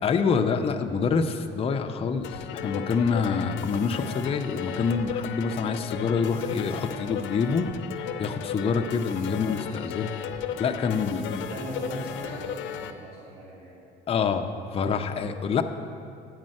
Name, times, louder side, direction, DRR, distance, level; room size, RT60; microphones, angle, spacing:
voice 1, 0.0-7.7 8.2-10.1 10.6-11.4 14.1-15.6, left 5 dB, 30° left, 5 dB, 0.5 m, -26 dB
sound 1, 2.2-12.9, left 8 dB, 70° left, 0.6 m, -35 dB
voice 2, 10.8-11.2 11.5-13.8, right 1 dB, 40° right, -10 dB, 2.7 m, -39 dB
9.6 x 5.3 x 7.6 m, 2.6 s
cardioid pair, 130°, 20 cm